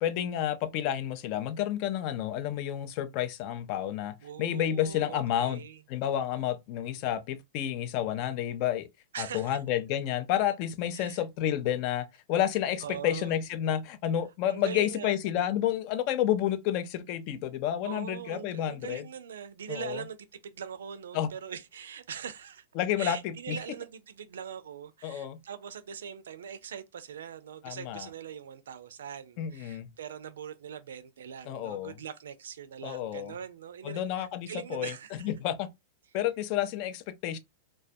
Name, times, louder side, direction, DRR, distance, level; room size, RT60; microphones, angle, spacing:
voice 1, 0.0-5.6 5.9-8.9 9.2-19.0 19.7-20.0 21.1-21.3 22.8-23.6 25.0-25.4 27.6-28.1 29.4-29.9 31.5-31.9 32.8-33.3 33.8-34.9 35.2-35.7 36.1-37.4, left 11 dB, 50° left, 0.4 m, -30 dB
voice 2, 4.2-5.8 9.1-9.6 10.9-11.2 12.8-13.3 14.5-15.2 17.8-22.6 23.0-35.3, right 8 dB, 80° right, 0.4 m, -42 dB
2.2 x 2.1 x 2.6 m
hypercardioid pair, 115°, 0 cm